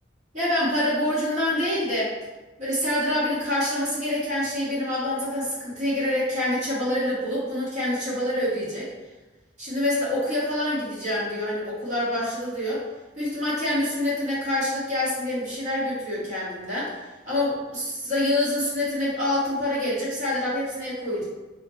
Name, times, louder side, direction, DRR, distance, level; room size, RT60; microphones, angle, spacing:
voice 1, 0.3-2.1 2.6-8.9 9.6-12.8 13.2-17.0 17.3-21.2, left 1 dB, 35° right, -8 dB, 1.1 m, -26 dB
3.9 x 2.1 x 3.0 m, 1.1 s
head